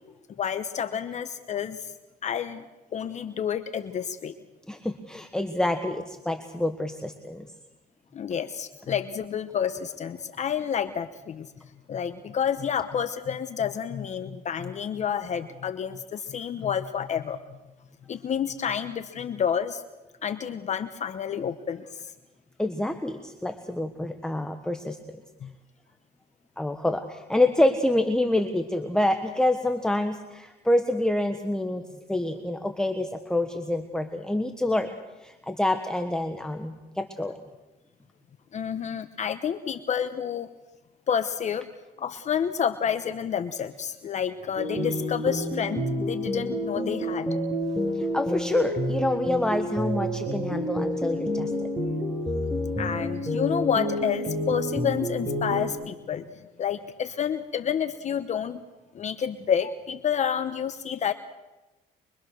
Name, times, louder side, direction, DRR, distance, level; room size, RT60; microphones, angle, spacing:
voice 1, 0.4-1.9 2.2-2.6 2.9-4.3 8.1-11.5 11.9-17.6 18.1-19.8 20.2-22.1 25.4-25.5 38.5-40.5 41.1-41.7 42.0-47.4 52.8-56.3 56.6-58.6 58.9-61.1, left 8 dB, 45° left, 10 dB, 1.0 m, -29 dB
voice 2, 4.7-7.5 22.6-25.0 26.6-34.9 35.2-37.4 47.9-51.5, left 1 dB, 5° left, 5 dB, 1.3 m, -27 dB
sound 1, 44.6-55.7, equal, 15° right, 7.7 m, -29 dB
24.0 x 23.5 x 6.5 m, 1.1 s
cardioid pair, 110°, 17 cm